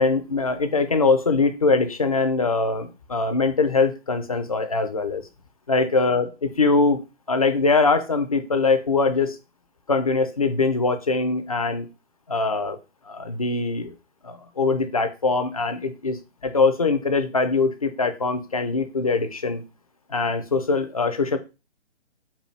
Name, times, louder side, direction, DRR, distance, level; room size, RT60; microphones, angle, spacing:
voice 1, 0.0-5.2 5.7-6.3 6.6-7.0 7.3-9.4 9.9-11.9 12.3-12.8 13.1-13.9 14.2-16.2 16.4-19.6 20.1-21.4, left 3 dB, 35° left, 9 dB, 0.4 m, -22 dB
4.2 x 2.3 x 4.4 m, 0.29 s
figure-of-eight pair, 135°, 35 cm